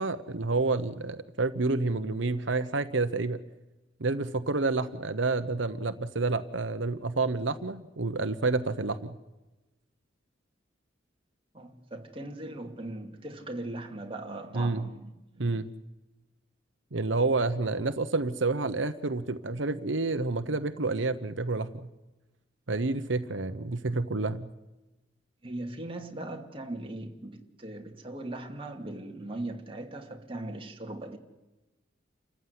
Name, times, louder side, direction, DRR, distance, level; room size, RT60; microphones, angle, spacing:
voice 1, 0.0-3.4 4.0-9.2 14.5-14.9 15.4-15.7 16.9-21.9 22.7-24.5, right 3 dB, 80° right, 1.0 m, -29 dB
voice 2, 11.5-15.6 25.4-31.2, right 2 dB, 30° right, 2.5 m, -39 dB
29.0 x 15.0 x 9.7 m
head